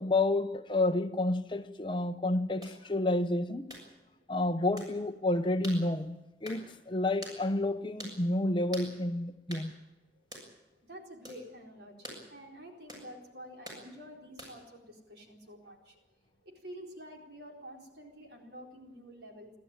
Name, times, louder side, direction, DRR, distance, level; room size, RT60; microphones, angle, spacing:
voice 1, 0.0-3.7 4.3-9.7, left 2 dB, 25° left, 0.9 m, -30 dB
Close Combat Whip Stick Switch Strike Flesh Multiple, 2.6-2.8 3.7-3.9 4.8-4.9 5.6-5.8 6.4-6.6 7.2-7.4 8.0-8.2 8.7-8.9 9.5-9.7 10.3-10.5 11.2-11.4 12.0-12.2 12.9-13.1 13.6-13.8 14.4-14.7, equal, 20° right, 7.0 m, -45 dB
voice 2, 10.1-10.5 10.8-16.0 16.4-19.5, equal, 60° right, 4.4 m, -49 dB
28.5 x 12.5 x 9.0 m
head